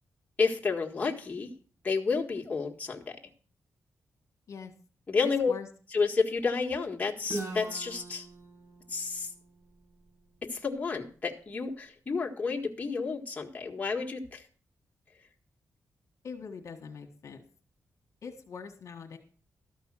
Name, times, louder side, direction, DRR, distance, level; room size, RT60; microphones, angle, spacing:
voice 1, 0.4-1.5 1.8-3.2 5.1-5.5 5.9-8.3 8.9-9.3 10.4-14.4, left 4 dB, 25° left, 0 dB, 1.7 m, -30 dB
voice 2, 5.2-5.7 16.2-17.4 18.2-19.2, left 5 dB, 65° left, 4 dB, 1.5 m, -43 dB
Guitar, 7.2-11.0, right 2 dB, 55° right, 6.5 m, -42 dB
13.0 x 5.5 x 7.5 m, 0.42 s
wide cardioid pair, 115°, 6 cm